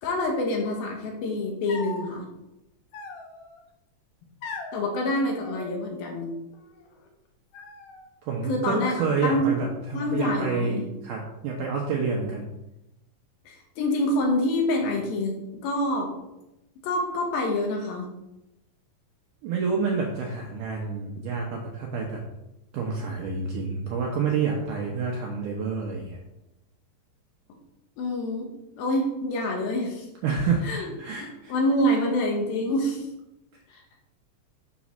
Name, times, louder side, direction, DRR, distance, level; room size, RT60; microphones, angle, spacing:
voice 1, 0.0-2.2 4.7-6.3 8.5-9.7 9.9-10.9 13.5-15.3 15.6-16.2 16.8-18.1 28.0-28.5 28.8-30.1 30.6-30.9 31.2-33.1 33.7-33.8, left 1 dB, 70° left, 1 dB, 2.7 m, -26 dB
sound 1, 1.7-2.1 2.9-3.6 4.4-4.8 5.4-6.3 6.5-7.1 7.5-8.1 8.8-9.7 10.0-10.7, left 4 dB, 90° left, 1.5 m, -41 dB
voice 2, 8.2-12.5 19.4-22.2 22.7-26.2 30.2-31.5, right 5 dB, 75° right, -1 dB, 1.9 m, -28 dB
7.5 x 4.1 x 6.1 m, 0.91 s
omnidirectional pair, 4.7 m